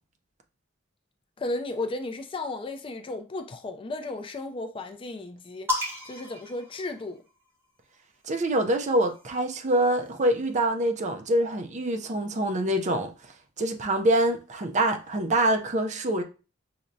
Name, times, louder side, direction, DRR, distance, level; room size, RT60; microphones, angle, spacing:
voice 1, 1.4-7.2, left 2 dB, 25° left, 0.3 m, -34 dB
sound 1, 5.7-7.5 8.6-10.2, left 2 dB, 10° right, 0.9 m, -35 dB
voice 2, 8.2-13.1 13.6-16.2, right 1 dB, 40° right, 0.5 m, -25 dB
5.8 x 2.1 x 2.6 m
head